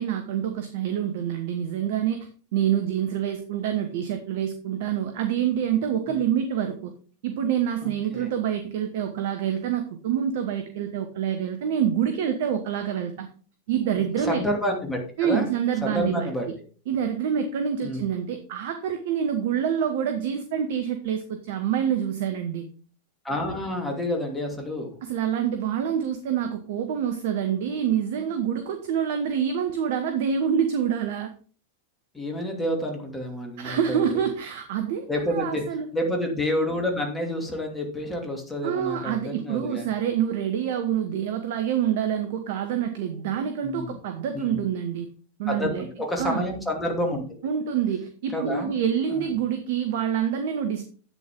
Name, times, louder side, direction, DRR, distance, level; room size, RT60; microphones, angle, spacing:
voice 1, 0.0-6.9 7.2-13.3 13.7-14.4 15.2-16.3 16.9-22.6 25.0-31.3 33.6-35.9 38.6-45.1 45.4-45.9 46.2-46.5 47.4-50.9, right 8 dB, 55° right, 6 dB, 1.1 m, -26 dB
voice 2, 7.8-8.3 13.9-15.5 15.8-16.5 17.8-18.1 23.2-25.0 32.1-34.2 35.1-35.6 35.9-39.9 43.6-44.0 44.3-44.6 45.5-47.2 48.3-48.7 49.1-49.2, left 1 dB, 10° left, 1 dB, 2.8 m, -29 dB
11.0 x 8.5 x 3.7 m, 0.42 s
figure-of-eight pair, 90°, 0 cm